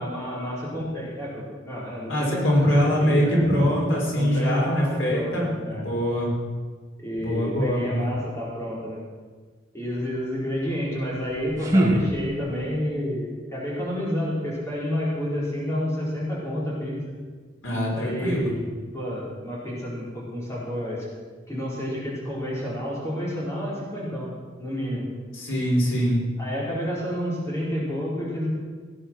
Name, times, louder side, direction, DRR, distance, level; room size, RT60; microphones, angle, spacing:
voice 1, 0.0-3.4 4.1-5.8 7.0-9.0 9.7-16.9 17.9-18.6 18.9-21.1 21.5-24.3 24.6-25.1 26.4-28.5, equal, 15° left, -6 dB, 4.6 m, -30 dB
voice 2, 2.1-6.3 7.2-8.1 17.6-18.5 25.3-26.2, equal, 85° left, -3 dB, 4.7 m, -23 dB
sound 1, 11.1-12.8, right 1 dB, 15° right, 2.1 m, -24 dB
17.0 x 10.0 x 6.4 m, 1.5 s
head